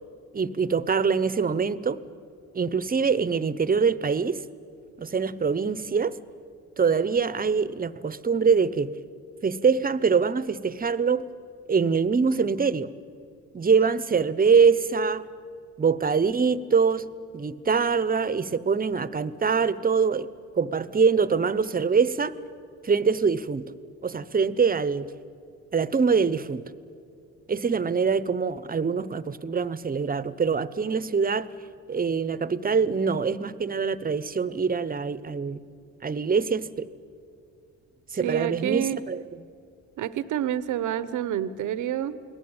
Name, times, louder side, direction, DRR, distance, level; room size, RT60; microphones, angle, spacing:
voice 1, 0.3-2.0 2.5-4.4 5.0-6.2 6.8-8.9 9.4-11.2 11.7-12.9 13.5-15.2 15.8-20.3 20.5-22.4 22.8-23.6 24.0-25.1 25.7-26.6 27.5-31.5 31.9-35.6 36.0-36.9 38.1-39.2, right 5 dB, 30° right, 16 dB, 1.0 m, -24 dB
voice 2, 38.2-39.0 40.0-42.3, right 11 dB, 80° right, 15 dB, 1.0 m, -28 dB
29.0 x 19.5 x 8.9 m, 2.4 s
cardioid pair, 90°, 30 cm